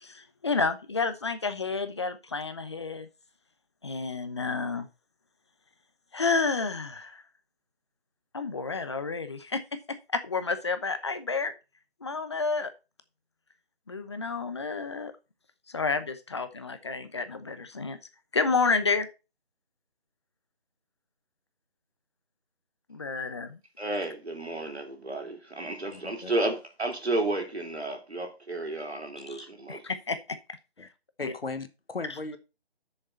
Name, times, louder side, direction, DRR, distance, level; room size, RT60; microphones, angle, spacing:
voice 1, 0.0-3.1 3.8-4.9 6.1-7.2 8.3-11.5 12.0-12.7 13.9-15.1 15.7-18.0 18.3-19.1 22.9-23.6 29.3-30.4 31.2-31.3, left 4 dB, 25° left, 0.8 m, -30 dB
voice 2, 23.8-29.8, right 2 dB, 85° right, 3.3 m, -32 dB
voice 3, 25.9-26.3 30.8-30.9 31.2-32.4, left 3 dB, 65° left, 1.4 m, -37 dB
7.4 x 6.7 x 5.7 m
figure-of-eight pair, 160°, 31 cm